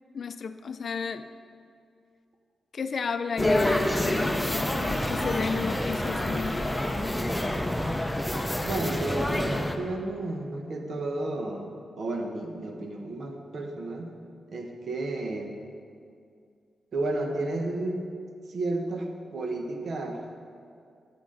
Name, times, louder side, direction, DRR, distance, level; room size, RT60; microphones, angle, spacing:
voice 1, 0.1-1.2 2.7-7.0, left 5 dB, 55° left, 10 dB, 0.4 m, -33 dB
sound 1, 3.4-9.8, left 1 dB, 10° left, 0.6 m, -27 dB
voice 2, 8.6-14.1 14.5-15.6 16.9-18.0 18.5-20.2, right 2 dB, 65° right, 3 dB, 1.1 m, -32 dB
14.0 x 5.9 x 3.9 m, 2.3 s
cardioid pair, 95°, 0 cm